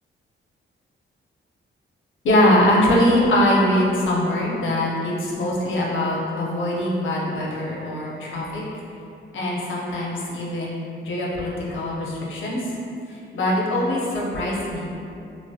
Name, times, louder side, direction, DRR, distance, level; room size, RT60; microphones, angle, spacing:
voice 1, 2.2-8.6 9.3-10.8 11.0-12.6 13.1-15.0, left 1 dB, 70° left, -4 dB, 0.6 m, -22 dB
3.1 x 2.0 x 2.6 m, 2.6 s
wide cardioid pair, 140°, 21 cm